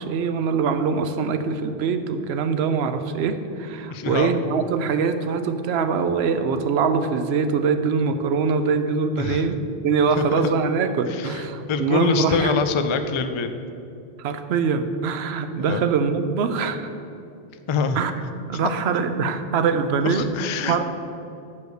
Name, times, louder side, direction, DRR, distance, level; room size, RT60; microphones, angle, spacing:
voice 1, 0.0-12.5 14.2-16.9 18.0-18.1 18.5-20.2 20.7-20.8, right 5 dB, 85° right, 9 dB, 0.8 m, -23 dB
voice 2, 3.9-4.3 9.1-9.5 10.2-10.4 11.1-11.4 11.7-13.5 15.6-15.8 17.7-18.0 20.0-20.8, left 5 dB, 50° left, 8 dB, 0.3 m, -25 dB
7.0 x 4.8 x 6.5 m, 2.6 s
omnidirectional pair, 1.1 m